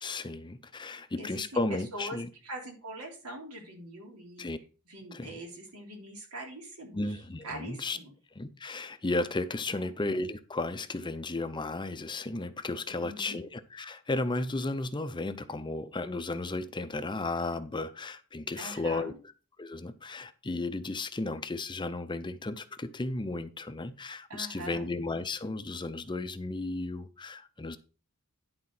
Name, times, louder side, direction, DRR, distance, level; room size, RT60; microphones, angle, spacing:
voice 1, 0.0-2.3 4.4-4.6 5.1-5.4 6.9-8.0 8.4-19.1 19.6-27.8, left 2 dB, 20° left, 0.6 m, -34 dB
voice 2, 1.2-2.2 2.4-4.5 4.9-8.1 9.7-9.9 12.9-13.4 18.6-19.2 24.3-24.9, right 1 dB, 90° right, 3.4 m, -43 dB
11.0 x 4.3 x 5.9 m
head